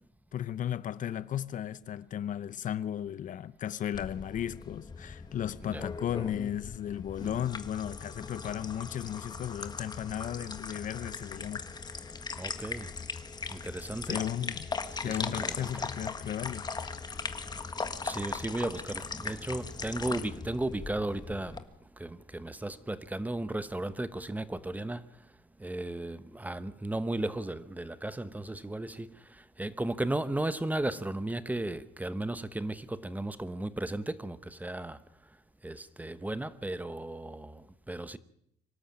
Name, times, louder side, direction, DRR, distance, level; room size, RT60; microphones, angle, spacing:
voice 1, 0.3-11.7 14.1-14.7 15.0-16.7, left 10 dB, 50° left, 0.7 m, -35 dB
sound 1, 3.9-21.6, left 4 dB, 25° left, 1.7 m, -39 dB
voice 2, 12.4-13.0 13.5-14.2 14.9-15.9 17.1-35.0 35.6-38.2, right 1 dB, 10° right, 1.0 m, -35 dB
24.5 x 13.0 x 8.9 m
cardioid pair, 110°, 17 cm